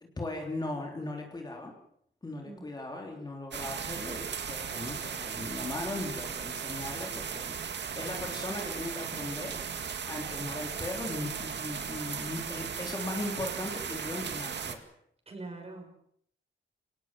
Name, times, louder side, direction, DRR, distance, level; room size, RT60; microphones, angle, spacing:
voice 1, 0.2-1.7 2.2-9.6 10.1-14.9, left 2 dB, 20° left, 1 dB, 3.5 m, -38 dB
voice 2, 2.4-2.7 15.3-15.9, right 2 dB, 30° right, 3 dB, 6.4 m, -43 dB
sound 1, 3.5-14.7, right 7 dB, 60° right, 2.2 m, -37 dB
26.0 x 18.5 x 7.6 m, 0.68 s
wide cardioid pair, 160°, 20 cm